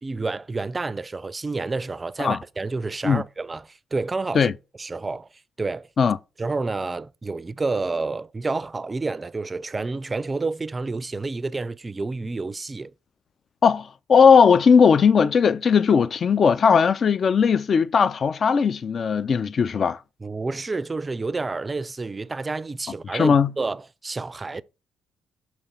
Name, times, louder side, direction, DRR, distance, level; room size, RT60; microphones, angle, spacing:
voice 1, 0.0-4.5 4.8-5.3 5.6-5.9 6.4-12.9 20.2-24.6, right 3 dB, 25° right, 0.4 m, -29 dB
voice 2, 13.6-20.0 23.1-23.5, left 6 dB, 50° left, 0.3 m, -18 dB
6.9 x 2.9 x 5.5 m
cardioid pair, 90°, 0 cm